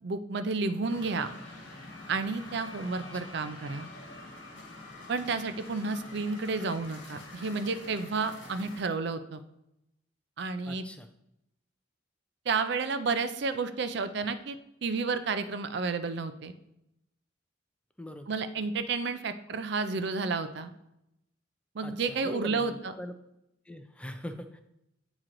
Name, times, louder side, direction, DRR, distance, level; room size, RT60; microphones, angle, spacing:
voice 1, 0.0-1.4 2.1-3.9 5.1-9.4 10.4-10.8 12.5-16.5 18.3-20.7 21.7-22.9, right 4 dB, 60° right, 10 dB, 0.5 m, -31 dB
sound 1, 0.9-8.8, left 2 dB, 65° left, 1.3 m, -46 dB
voice 2, 10.6-11.1 18.0-18.3 21.8-23.1 23.7-24.6, equal, 5° left, 7 dB, 0.4 m, -42 dB
9.0 x 3.0 x 3.8 m, 0.85 s
head